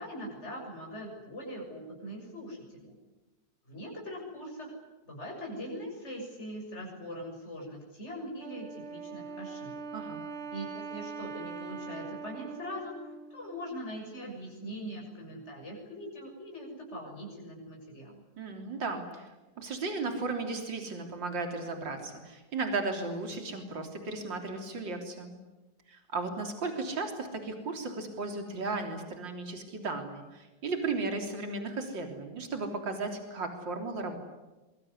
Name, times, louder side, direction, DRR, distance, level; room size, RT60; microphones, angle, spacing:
voice 1, 0.0-2.9 3.7-4.7 5.1-9.8 10.5-18.2, equal, 35° left, -1 dB, 7.2 m, -42 dB
Wind instrument woodwind instrument, 8.4-13.8, right 5 dB, 40° right, 1.4 m, -42 dB
voice 2, 9.9-10.2 18.4-25.3 25.9-34.2, right 3 dB, 75° right, 4 dB, 4.1 m, -35 dB
25.0 x 24.0 x 9.8 m, 1.1 s
omnidirectional pair, 2.0 m